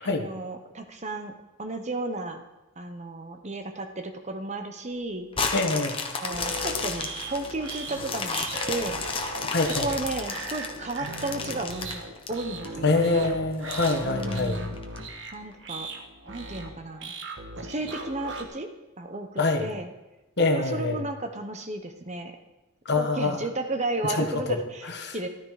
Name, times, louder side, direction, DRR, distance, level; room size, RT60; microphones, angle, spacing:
voice 1, 0.0-2.4 2.8-5.3 6.2-9.0 9.8-12.0 12.3-13.2 14.0-14.8 15.3-15.9 16.3-17.1 17.6-18.7 19.0-19.9 20.5-22.4 23.0-24.9 25.1-25.3, right 2 dB, 35° right, 6 dB, 1.0 m, -33 dB
sound 1, 5.3-12.7 13.1-13.2 13.7-15.0 15.5-15.6, left 4 dB, 25° left, 1.2 m, -32 dB
voice 2, 5.5-6.0 9.5-9.9 12.8-14.6 19.4-19.7 20.4-21.0 22.8-23.4 24.2-24.6 24.8-25.2, left 3 dB, 50° left, 5 dB, 1.5 m, -25 dB
sound 2, 6.3-18.4, right 2 dB, 60° right, 1.5 m, -38 dB
13.5 x 12.5 x 4.9 m, 1.0 s
head